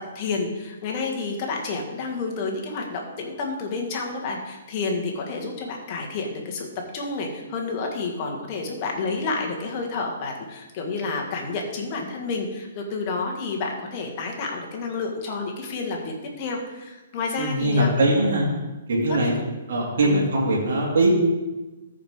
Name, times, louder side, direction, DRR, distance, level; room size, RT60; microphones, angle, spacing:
voice 1, 0.2-6.7 6.9-17.9 19.1-19.2 20.0-20.3, left 3 dB, 35° left, 0 dB, 1.8 m, -30 dB
voice 2, 17.3-18.5 18.9-19.3 19.7-21.1, right 1 dB, 60° right, -3 dB, 2.4 m, -21 dB
13.5 x 5.1 x 3.7 m, 1.1 s
figure-of-eight pair, 125°, 0 cm